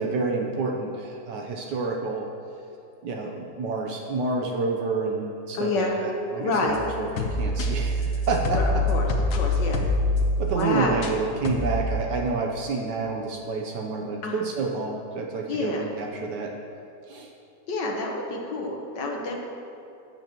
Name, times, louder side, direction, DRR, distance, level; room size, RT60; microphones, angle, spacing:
voice 1, 0.0-2.3 3.0-8.8 10.4-16.5 17.1-17.3, right 4 dB, 80° right, 1 dB, 1.4 m, -29 dB
voice 2, 5.5-6.0 6.4-6.8 8.5-9.1 9.3-9.8 10.5-11.0 14.2-14.4 15.5-15.9 17.7-19.4, left 2 dB, 85° left, 0 dB, 1.7 m, -28 dB
sound 1, 6.7-11.2 11.5-11.9, left 1 dB, 65° left, 1.3 m, -25 dB
14.5 x 9.0 x 2.9 m, 2.6 s
omnidirectional pair, 1.9 m